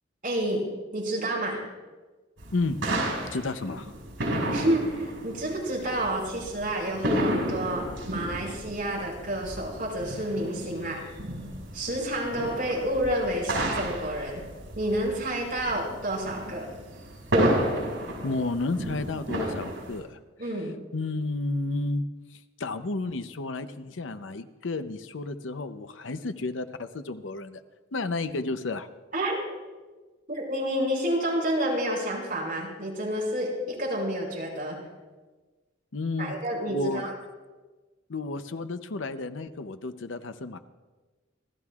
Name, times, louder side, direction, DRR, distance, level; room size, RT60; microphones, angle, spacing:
voice 1, 0.2-0.7 0.9-1.6 4.5-11.0 11.7-14.4 14.8-16.7 20.4-20.8 29.1-29.4 30.3-34.8 36.2-37.1, right 1 dB, 50° right, -3 dB, 5.3 m, -29 dB
sound 1, 2.4-20.0, right 1 dB, 80° right, 5.6 m, -32 dB
voice 2, 3.3-3.9 18.2-20.2 20.9-22.0 22.3-27.6 27.9-28.9 35.9-36.3 36.7-37.1 38.1-40.6, left 3 dB, 80° left, 10 dB, 0.7 m, -32 dB
28.5 x 13.0 x 2.4 m, 1.3 s
head